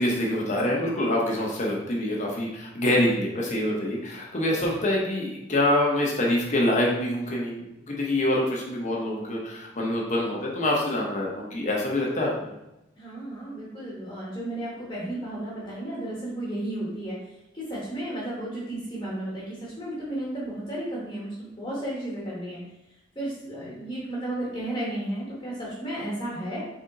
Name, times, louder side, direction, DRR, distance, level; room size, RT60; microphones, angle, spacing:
voice 1, 0.0-12.3, left 1 dB, 40° left, -2 dB, 0.9 m, -25 dB
voice 2, 13.0-17.2 17.5-22.6 23.1-26.7, right 1 dB, 25° left, -7 dB, 1.2 m, -33 dB
3.8 x 3.5 x 3.9 m, 0.89 s
head